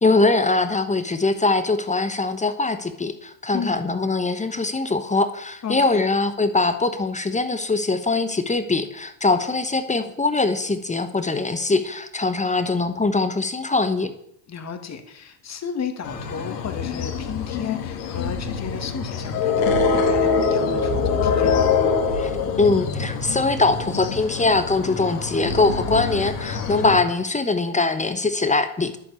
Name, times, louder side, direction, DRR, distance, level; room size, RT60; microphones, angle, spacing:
voice 1, 0.0-14.1 22.2-22.3 22.6-29.0, left 3 dB, 15° left, 10 dB, 1.1 m, -22 dB
voice 2, 5.6-6.1 14.5-21.7, left 6 dB, 35° left, 6 dB, 2.2 m, -33 dB
sound 1, 16.0-27.0, left 5 dB, 75° left, 2.3 m, -24 dB
11.0 x 7.3 x 8.3 m, 0.75 s
hypercardioid pair, 80°, 48 cm